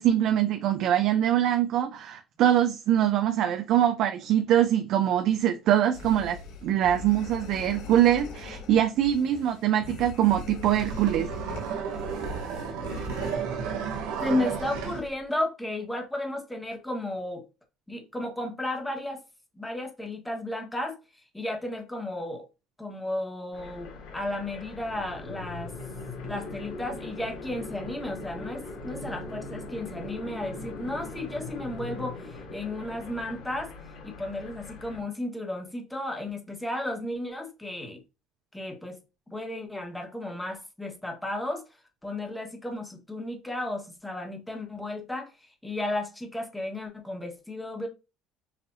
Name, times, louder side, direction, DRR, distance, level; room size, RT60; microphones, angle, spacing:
voice 1, 0.0-11.3, right 11 dB, 60° right, 0.5 m, -23 dB
sound 1, 5.9-13.4, left 3 dB, 90° left, 1.6 m, -41 dB
sound 2, 10.3-15.0, right 6 dB, 85° right, 1.1 m, -33 dB
voice 2, 14.2-17.4 17.9-19.2 19.5-21.0 21.3-22.5 22.8-25.7 26.2-33.7 34.0-38.0 38.5-39.0 39.3-41.6 42.0-47.9, left 1 dB, 5° left, 1.3 m, -33 dB
sound 3, 23.5-35.0, left 2 dB, 70° left, 2.7 m, -40 dB
5.7 x 2.7 x 2.6 m
cardioid pair, 125°, 0 cm